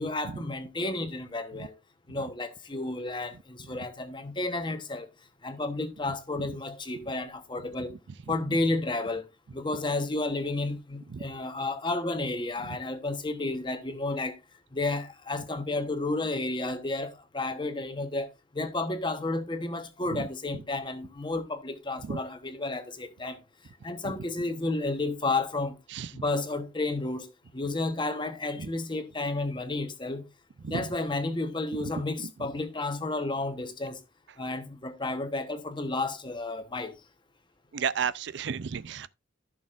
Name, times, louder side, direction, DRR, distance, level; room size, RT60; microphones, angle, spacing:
voice 1, 0.0-1.8 2.1-5.1 5.4-7.9 8.3-14.4 14.7-23.4 23.8-25.8 26.1-27.3 27.5-30.2 30.7-34.0 34.4-37.0, left 2 dB, 25° left, 1.1 m, -32 dB
voice 2, 37.7-39.1, right 6 dB, 60° right, 0.4 m, -32 dB
14.5 x 6.3 x 2.5 m
head